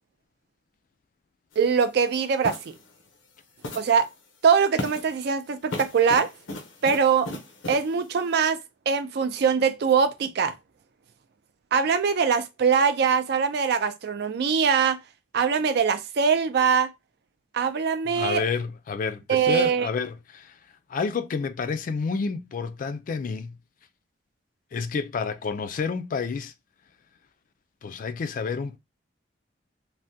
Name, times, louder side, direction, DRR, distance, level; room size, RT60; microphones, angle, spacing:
sound 1, 1.5-1.7 2.4-2.8 3.6-4.0 4.8-5.2 5.7-7.9, left 1 dB, 85° left, 0.7 m, -36 dB
voice 1, 1.6-2.8 3.7-4.1 4.4-6.3 6.8-7.3 7.7-8.6 8.9-10.5 11.7-15.0 15.3-16.9 17.5-18.4 19.3-19.9, right 6 dB, 60° right, 0.4 m, -22 dB
voice 2, 18.1-20.6 20.9-23.6 24.7-26.5 27.8-28.8, left 5 dB, 45° left, 0.3 m, -29 dB
3.4 x 2.1 x 2.6 m
head